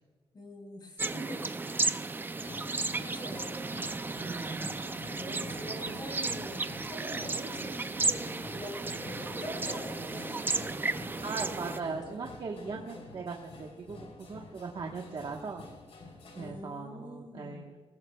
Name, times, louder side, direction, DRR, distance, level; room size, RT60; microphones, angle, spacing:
voice 1, 0.3-1.4 2.4-3.7 5.0-7.7 8.0-10.8 11.0-12.2 12.7-13.0 16.3-17.6, equal, 40° left, 0 dB, 4.7 m, -44 dB
sound 1, 1.0-11.8, right 3 dB, 20° right, 0.4 m, -34 dB
sound 2, 2.4-16.5, left 2 dB, 75° left, 3.5 m, -48 dB
voice 2, 4.2-4.7 11.2-15.7 16.3-17.8, right 4 dB, 50° right, 0 dB, 1.2 m, -39 dB
22.5 x 17.0 x 2.3 m, 1.4 s
wide cardioid pair, 150°, 10 cm